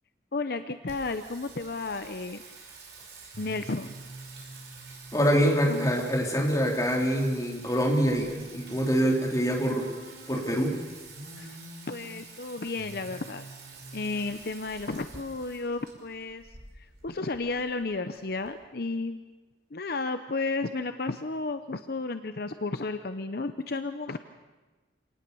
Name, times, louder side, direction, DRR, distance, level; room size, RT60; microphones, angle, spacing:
voice 1, 0.3-2.4 3.4-4.0 5.7-5.9 11.4-11.6 11.9-13.4 13.9-16.5 16.8-19.2 19.7-24.2, left 3 dB, 55° left, 9 dB, 0.8 m, -33 dB
Singing, 0.9-18.5, right 3 dB, 65° right, 5.7 m, -46 dB
voice 2, 5.1-9.9 10.3-10.8, equal, 20° left, -1 dB, 3.9 m, -25 dB
27.0 x 19.0 x 7.0 m, 1.2 s
head